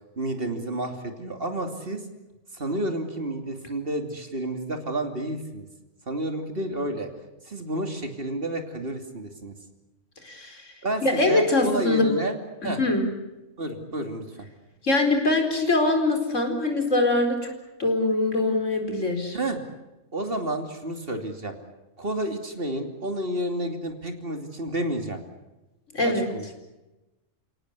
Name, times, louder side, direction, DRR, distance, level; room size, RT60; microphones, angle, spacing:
voice 1, 0.2-2.0 2.5-5.7 6.1-7.1 7.5-9.5 10.8-12.4 12.6-12.8 13.6-14.5 19.3-19.6 20.1-21.5 22.0-25.2 26.0-26.5, right 1 dB, 50° right, 5 dB, 3.1 m, -30 dB
voice 2, 10.2-10.6 11.0-12.1 12.8-13.1 14.8-17.5 17.8-19.4 25.9-26.3, left 2 dB, 90° left, 3 dB, 4.9 m, -23 dB
29.5 x 18.0 x 8.3 m, 1.0 s
omnidirectional pair, 1.3 m